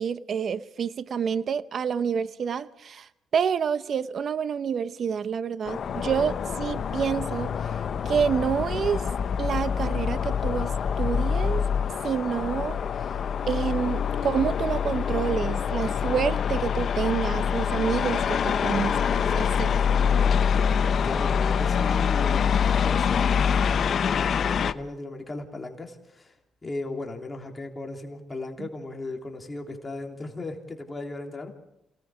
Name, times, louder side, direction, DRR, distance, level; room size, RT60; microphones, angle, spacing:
voice 1, 0.0-7.5 8.1-9.1 9.4-10.7 11.0-11.7 12.0-12.8 13.5-19.7 28.6-28.7, right 7 dB, 55° right, 14 dB, 0.8 m, -28 dB
sound 1, 5.7-24.7, left 7 dB, 55° left, 0.9 m, -25 dB
voice 2, 20.8-26.4 26.6-31.5, left 2 dB, 25° left, 2 dB, 3.4 m, -36 dB
29.0 x 18.0 x 5.0 m, 0.84 s
cardioid pair, 90°, 0 cm